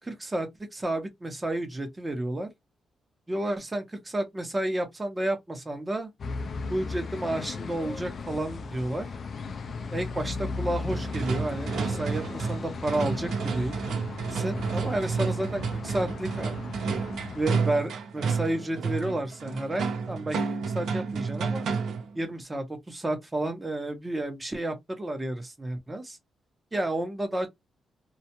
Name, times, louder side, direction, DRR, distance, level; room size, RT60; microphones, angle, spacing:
voice 1, 0.0-2.5 3.3-6.1 6.7-9.1 9.9-13.8 14.3-16.5 17.3-20.4 20.7-21.7 22.1-26.2 26.7-27.5, right 1 dB, 20° right, 0.9 m, -31 dB
sound 1, 6.2-17.6, left 4 dB, 50° left, 0.3 m, -36 dB
sound 2, 10.9-22.1, right 5 dB, 75° right, 0.7 m, -31 dB
2.4 x 2.1 x 2.8 m
cardioid pair, 105°, 0 cm